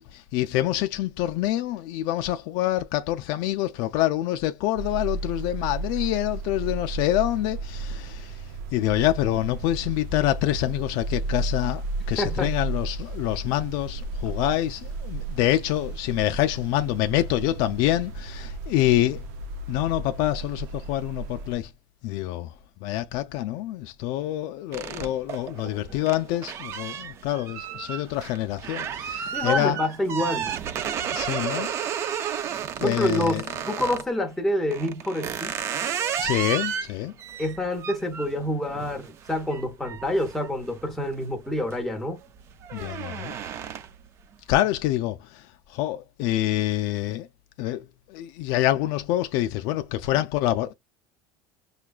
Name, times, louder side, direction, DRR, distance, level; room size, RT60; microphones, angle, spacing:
voice 1, 0.0-8.4 8.7-19.3 19.7-21.7 22.0-22.5 22.8-29.8 30.9-31.7 32.8-33.4 36.2-37.1 42.7-43.3 44.5-47.3 47.6-50.7, left 14 dB, 55° left, 0.3 m, -26 dB
sound 1, 4.8-21.6, right 2 dB, 85° right, 0.6 m, -34 dB
voice 2, 12.2-12.5 29.3-30.5 32.8-35.6 37.4-42.2, left 1 dB, 5° left, 0.8 m, -27 dB
sound 2, 24.7-34.1 34.7-41.1 41.5-41.9 42.2-44.1, right 8 dB, 30° right, 0.3 m, -32 dB
5.7 x 2.2 x 2.3 m
cardioid pair, 170°, 9 cm